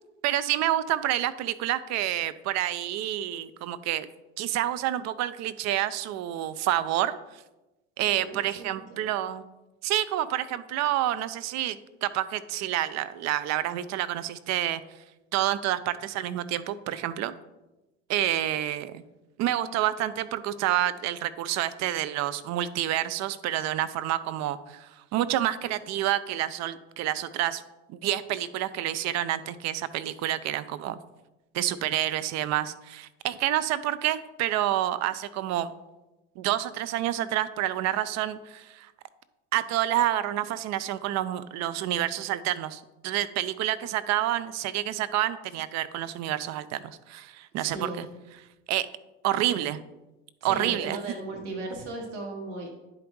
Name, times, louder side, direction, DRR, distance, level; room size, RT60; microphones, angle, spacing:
voice 1, 0.2-4.1 4.4-7.2 8.0-9.4 9.8-14.8 15.3-17.3 18.1-19.0 19.4-27.6 27.9-31.0 31.5-35.7 36.4-38.9 39.5-48.1 48.7-48.9 49.2-49.8 50.4-51.0, right 13 dB, 50° right, 15 dB, 0.6 m, -28 dB
voice 2, 8.2-9.1 47.5-48.1 50.4-52.7, right 2 dB, 90° right, 0 dB, 1.5 m, -37 dB
10.5 x 5.0 x 3.1 m, 1.0 s
hypercardioid pair, 85°, 35 cm